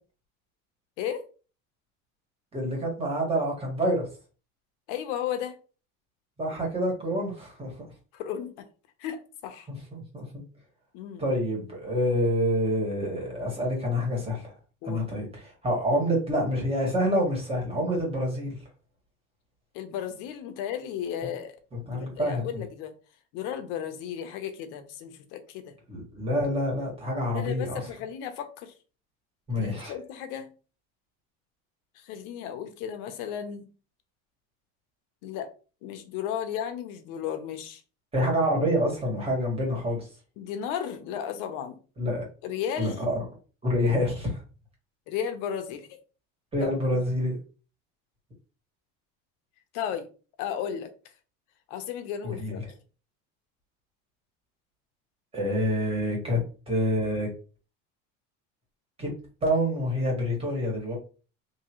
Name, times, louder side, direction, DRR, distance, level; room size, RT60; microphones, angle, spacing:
voice 1, 2.5-4.1 6.4-7.9 9.7-10.4 11.2-14.5 14.8-18.6 21.9-22.6 25.9-27.8 29.5-29.9 38.1-40.1 42.0-42.3 42.8-43.2 43.6-44.4 46.5-47.4 52.2-52.6 55.3-56.4 56.7-57.3 59.0-59.1 59.4-61.0, equal, 20° right, 1.6 m, -27 dB
voice 2, 4.9-5.5 8.1-8.7 9.0-9.7 10.9-11.2 14.8-15.0 19.7-21.5 21.9-22.9 23.3-25.7 27.3-28.7 29.5-30.5 32.0-33.7 35.2-35.5 35.8-37.8 40.4-41.8 42.4-43.0 45.1-45.9 46.6-46.7 49.7-50.1 50.4-50.9 51.7-52.6, left 9 dB, 80° left, 0.8 m, -34 dB
3.7 x 2.7 x 3.0 m
cardioid pair, 155°, 31 cm